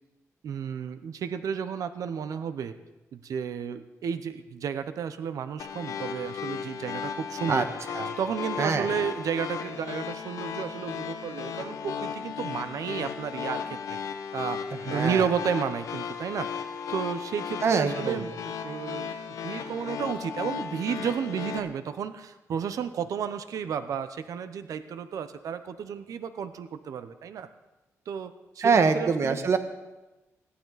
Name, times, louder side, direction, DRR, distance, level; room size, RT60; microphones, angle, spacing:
voice 1, 0.4-2.8 3.1-7.6 8.2-14.0 14.3-14.6 14.9-16.5 16.9-19.1 19.4-27.5 28.1-29.4, right 7 dB, 80° right, 11 dB, 0.9 m, -32 dB
sound 1, 5.6-21.6, left 7 dB, 90° left, 1.2 m, -35 dB
voice 2, 14.9-15.3 17.6-18.2 28.6-29.6, right 5 dB, 55° right, 8 dB, 1.4 m, -24 dB
21.0 x 14.5 x 4.1 m, 1.1 s
cardioid pair, 105°, 6 cm